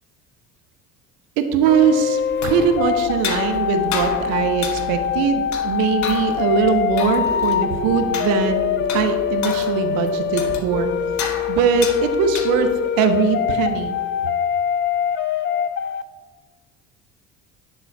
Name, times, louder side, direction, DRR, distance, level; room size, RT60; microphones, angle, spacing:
voice 1, 1.4-10.9 11.5-14.0, right 6 dB, 70° right, 7 dB, 1.0 m, -21 dB
sound 1, 1.6-16.0, left 9 dB, 35° left, 0.4 m, -24 dB
sound 2, 2.2-12.9, left 6 dB, 50° left, 1.1 m, -33 dB
sound 3, 7.2-9.6 12.2-12.3, left 1 dB, 85° left, 2.3 m, -34 dB
9.8 x 3.9 x 4.5 m, 1.5 s
supercardioid pair, 80°, 36 cm